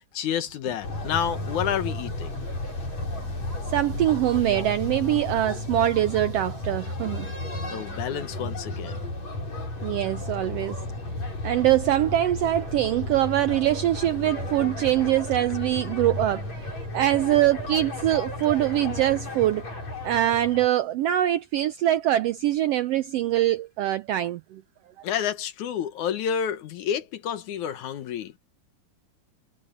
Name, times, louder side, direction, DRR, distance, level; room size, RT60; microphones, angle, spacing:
voice 1, 0.1-2.3 7.7-9.0 25.0-28.3, left 9 dB, 80° left, 2.6 m, -29 dB
sound 1, 0.8-20.7, left 2 dB, 60° left, 8.9 m, -33 dB
voice 2, 3.7-7.3 9.8-10.8 11.4-16.5 16.9-19.6 20.0-24.6, right 13 dB, 85° right, 1.4 m, -23 dB
omnidirectional pair, 3.4 m